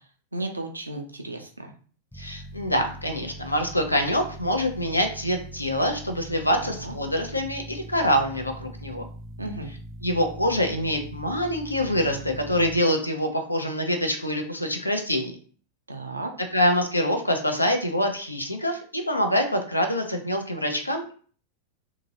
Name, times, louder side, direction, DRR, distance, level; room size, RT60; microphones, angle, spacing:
voice 1, 0.3-1.7 6.6-6.9 9.4-9.7 15.9-16.3, right 2 dB, 80° right, 4 dB, 0.5 m, -34 dB
voice 2, 2.1-9.0 10.0-15.4 16.5-21.1, equal, 85° left, 5 dB, 0.6 m, -25 dB
sound 1, 2.1-12.8, right 1 dB, 5° left, 0.6 m, -41 dB
2.8 x 2.7 x 2.7 m, 0.43 s
figure-of-eight pair, 90°, 0 cm